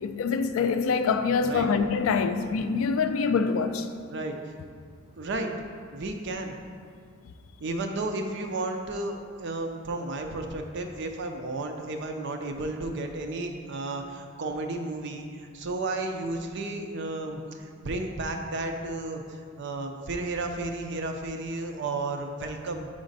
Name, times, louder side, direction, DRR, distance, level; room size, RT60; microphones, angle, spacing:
voice 1, 0.0-3.9, left 5 dB, 70° left, 0.4 m, -25 dB
voice 2, 5.2-5.5 5.9-6.6 7.6-22.9, right 2 dB, 60° right, 0.5 m, -33 dB
5.1 x 5.0 x 4.0 m
head